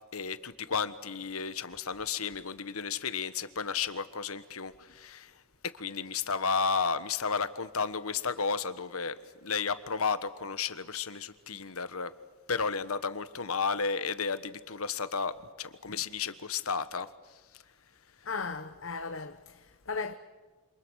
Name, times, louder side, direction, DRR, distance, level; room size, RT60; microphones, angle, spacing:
voice 1, 0.1-5.3 5.7-9.2 9.4-12.1 12.5-17.1, left 5 dB, 85° left, 1.4 m, -33 dB
voice 2, 18.2-20.1, left 4 dB, 65° left, 1.1 m, -37 dB
28.0 x 26.5 x 6.4 m
head